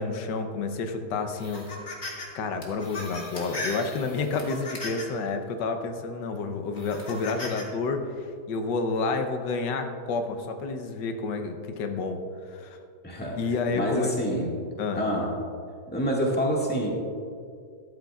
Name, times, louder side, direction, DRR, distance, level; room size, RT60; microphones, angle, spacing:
voice 1, 0.0-2.0 2.3-12.2 12.5-12.8 13.4-14.1 14.8-15.0, left 4 dB, 90° left, 6 dB, 1.5 m, -30 dB
sound 1, 1.4-2.3 2.6-5.2 5.8-5.9 6.7-7.6, left 2 dB, 40° left, 1.8 m, -37 dB
voice 2, 13.0-13.4 13.7-14.5 14.9-15.3 15.9-16.9, equal, 5° left, -3 dB, 1.6 m, -26 dB
13.0 x 11.5 x 2.4 m, 2.3 s
omnidirectional pair, 1.8 m